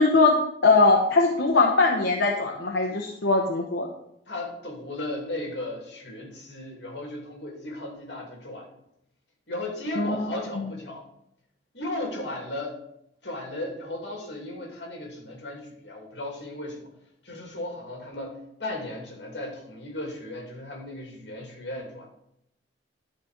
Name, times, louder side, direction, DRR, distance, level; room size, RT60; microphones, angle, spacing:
voice 1, 0.0-3.9 9.9-10.6, left 3 dB, 90° left, 2 dB, 1.0 m, -21 dB
voice 2, 4.3-8.7 9.5-11.0 11.7-12.7 13.2-16.9 17.2-22.1, left 1 dB, 75° left, 0 dB, 2.6 m, -35 dB
11.5 x 3.9 x 6.5 m, 0.77 s
head